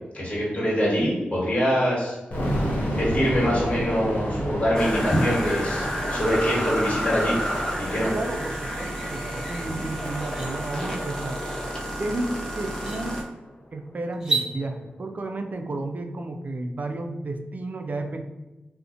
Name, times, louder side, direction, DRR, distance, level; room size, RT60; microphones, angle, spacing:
voice 1, 0.1-2.2 2.9-7.4 7.8-8.1, equal, 35° left, -6 dB, 1.3 m, -24 dB
sound 1, 2.3-13.2, equal, 60° left, 0.6 m, -32 dB
sound 2, 4.7-13.2, equal, 15° left, 0.7 m, -30 dB
voice 2, 8.0-11.4 12.0-13.2 13.7-18.2, right 2 dB, 50° right, 6 dB, 0.3 m, -32 dB
sound 3, 9.5-9.6 10.0-10.5 12.1-12.2 12.7-13.0 14.1-14.5, right 3 dB, 15° right, 0.8 m, -28 dB
2.5 x 2.1 x 2.5 m, 1.1 s
cardioid pair, 40°, 4 cm